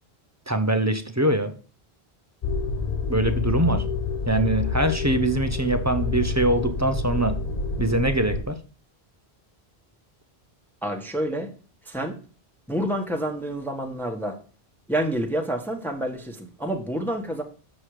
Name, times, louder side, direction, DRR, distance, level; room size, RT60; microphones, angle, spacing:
voice 1, 0.5-1.5 3.1-3.8 4.3-7.4 7.8-8.6, right 1 dB, 20° right, 9 dB, 0.7 m, -23 dB
sound 1, 2.4-8.4, left 4 dB, 45° left, 0.8 m, -28 dB
voice 2, 10.8-11.5 11.9-12.2 12.7-14.3 14.9-17.4, right 1 dB, ahead, 2 dB, 1.3 m, -28 dB
7.6 x 6.3 x 4.9 m, 0.38 s
omnidirectional pair, 1.1 m